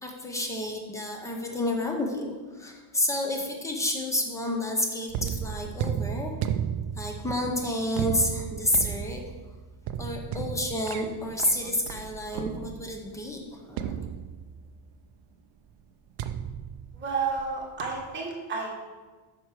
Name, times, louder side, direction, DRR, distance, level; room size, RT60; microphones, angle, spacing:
voice 1, 0.0-6.3 7.0-9.2 10.0-14.0, left 1 dB, 5° left, 2 dB, 0.7 m, -30 dB
sound 1, 5.1-13.0 13.8-14.8 16.2-17.5 17.8-18.1, right 9 dB, 50° right, 0.4 m, -34 dB
voice 2, 16.9-18.7, right 5 dB, 20° right, -3 dB, 1.6 m, -31 dB
7.8 x 5.9 x 4.7 m, 1.3 s
cardioid pair, 175°, 50 cm